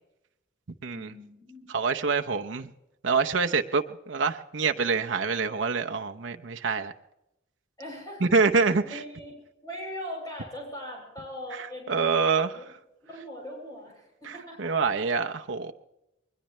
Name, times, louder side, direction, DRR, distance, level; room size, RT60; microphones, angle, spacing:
voice 1, 0.9-1.7 7.8-12.6 13.1-14.7, equal, 20° left, -1 dB, 7.7 m, -41 dB
voice 2, 1.7-2.7 3.0-6.9 8.2-8.8 11.9-12.5 14.2-14.3 14.6-15.7, right 4 dB, 90° right, 5 dB, 0.8 m, -26 dB
21.5 x 20.5 x 3.2 m, 0.91 s
head